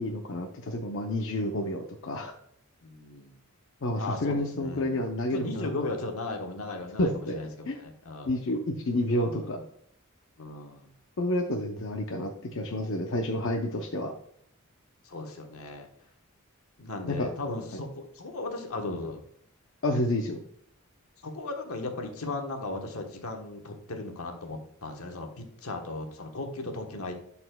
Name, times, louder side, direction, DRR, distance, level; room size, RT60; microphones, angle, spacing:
voice 1, 0.0-2.3 3.8-5.7 7.0-7.4 7.7-7.8 8.2-9.6 11.2-14.1 17.1-17.3 19.8-20.4, left 1 dB, 65° left, 2 dB, 0.6 m, -29 dB
voice 2, 2.8-3.4 4.0-4.9 5.3-8.3 9.3-9.6 10.4-10.9 15.0-15.9 16.8-19.2 21.2-27.1, left 2 dB, 85° left, 3 dB, 1.2 m, -36 dB
11.0 x 4.2 x 2.3 m, 0.66 s
head